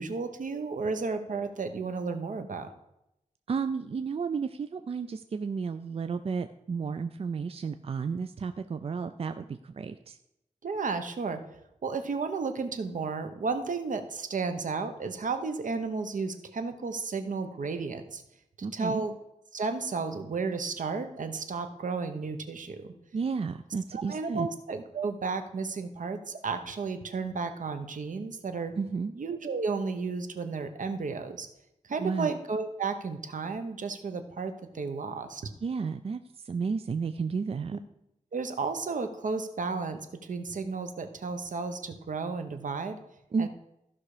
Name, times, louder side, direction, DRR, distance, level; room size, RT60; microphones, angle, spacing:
voice 1, 0.0-2.7 10.6-11.4 11.8-18.2 18.6-19.2 19.5-22.9 23.9-28.7 29.1-31.5 31.8-35.4 37.7-37.8 38.3-43.0 43.4-43.5, right 4 dB, 75° right, 8 dB, 1.0 m, -33 dB
voice 2, 3.5-10.2 18.6-19.1 23.1-24.5 28.8-29.1 32.0-32.3 35.6-37.8 43.3-43.5, right 5 dB, 45° right, 10 dB, 0.4 m, -32 dB
14.5 x 5.7 x 4.9 m, 0.84 s
wide cardioid pair, 120°, 13 cm